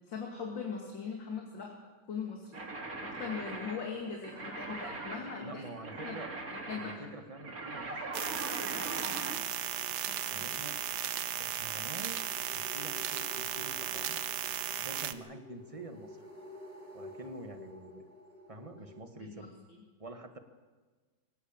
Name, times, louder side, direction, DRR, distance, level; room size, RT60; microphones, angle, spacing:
voice 1, 0.0-1.7 2.0-2.6 3.0-5.6 6.0-6.2 6.5-7.1 10.1-10.5 19.2-19.8, left 6 dB, 70° left, 0 dB, 3.1 m, -40 dB
sound 1, 2.5-9.4, right 2 dB, 45° right, 2.7 m, -41 dB
voice 2, 5.4-6.3 6.7-8.2 10.3-10.8 11.4-12.2 12.5-14.2 14.8-16.3 16.9-18.0 18.5-19.5 20.0-20.4, right 2 dB, 20° right, 6 dB, 1.5 m, -47 dB
sound 2, 8.1-15.1, right 10 dB, 65° right, 1.4 m, -36 dB
sound 3, 9.3-19.0, left 1 dB, 30° left, 4.1 m, -52 dB
24.5 x 17.5 x 7.4 m, 1.4 s
omnidirectional pair, 2.1 m